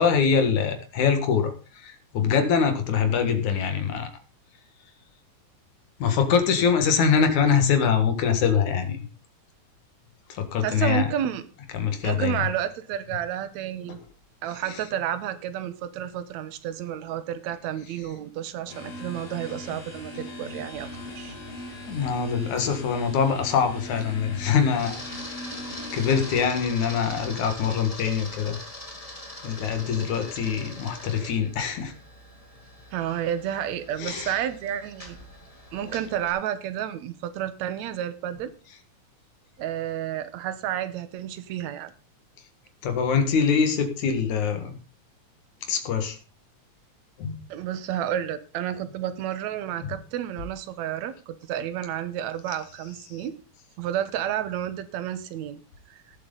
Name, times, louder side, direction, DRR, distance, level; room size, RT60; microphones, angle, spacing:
voice 1, 0.0-4.1 6.0-9.0 10.3-11.1 11.7-12.4 14.7-14.8 21.9-25.3 25.9-28.6 29.4-31.9 34.0-34.4 42.8-44.8 45.7-46.2 47.2-47.4 53.1-53.2, left 6 dB, 80° left, 7 dB, 3.2 m, -24 dB
voice 2, 10.6-11.4 12.0-14.0 14.4-20.9 21.1-21.4 32.9-35.2 35.7-38.5 39.6-41.9 47.5-53.3 53.8-55.6 55.9-56.0, right 10 dB, 75° right, 12 dB, 2.3 m, -31 dB
sound 1, 18.7-26.4, left 1 dB, 55° left, 4.5 m, -39 dB
Camera, 20.7-36.3, left 1 dB, 15° left, 2.1 m, -43 dB
17.5 x 7.9 x 4.0 m, 0.35 s
omnidirectional pair, 3.4 m